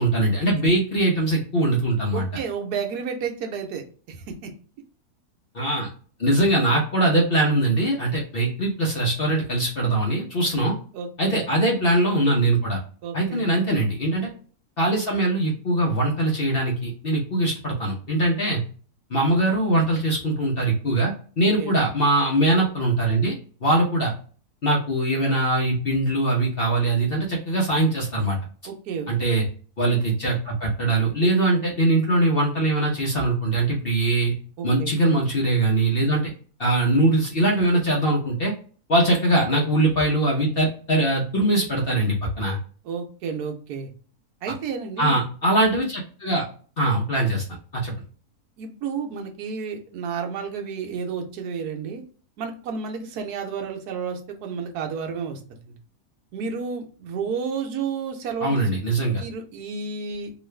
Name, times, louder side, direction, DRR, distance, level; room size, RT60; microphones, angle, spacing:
voice 1, 0.0-2.2 5.5-5.9 6.2-10.8 11.2-12.8 13.1-14.3 14.8-18.6 19.1-23.3 23.6-24.1 24.6-28.4 29.1-29.4 29.8-34.3 34.6-36.3 36.6-38.5 38.9-42.6 45.0-46.4 46.8-47.4 47.7-47.9 58.4-59.2, right 1 dB, 50° left, -1 dB, 0.7 m, -22 dB
voice 2, 2.1-4.5 10.9-11.4 13.0-13.6 21.6-21.7 28.7-29.1 34.6-34.9 39.1-39.2 42.8-43.9 44.4-45.2 48.6-52.0 52.4-55.7 56.3-58.7 59.2-60.3, right 6 dB, 80° right, 4 dB, 1.2 m, -31 dB
3.0 x 2.4 x 3.1 m, 0.41 s
omnidirectional pair, 1.7 m